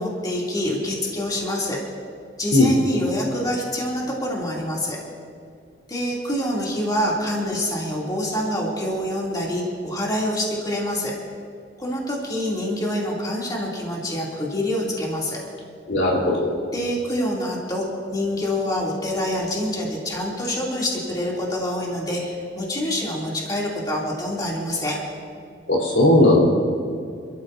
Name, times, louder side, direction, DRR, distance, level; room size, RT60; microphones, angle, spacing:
voice 1, 0.0-1.8 2.4-5.0 5.9-11.1 11.8-15.4 16.7-17.9 18.1-25.0, left 1 dB, 20° left, -4 dB, 2.9 m, -26 dB
voice 2, 15.9-16.5 25.7-26.5, left 1 dB, 85° left, -3 dB, 3.9 m, -17 dB
28.0 x 13.5 x 2.7 m, 2.3 s
head